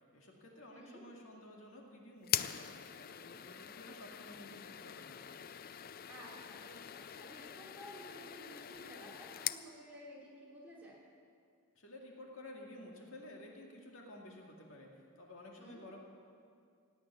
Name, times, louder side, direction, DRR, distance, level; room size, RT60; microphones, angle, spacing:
voice 1, 0.1-5.2 11.8-16.0, left 1 dB, 65° left, -1 dB, 2.2 m, -53 dB
voice 2, 0.7-1.0 6.1-11.0 15.6-15.8, equal, 5° right, -7 dB, 3.7 m, -53 dB
sound 1, 2.2-9.7, left 11 dB, 40° left, 0.4 m, -42 dB
17.0 x 8.7 x 9.5 m, 2.3 s
head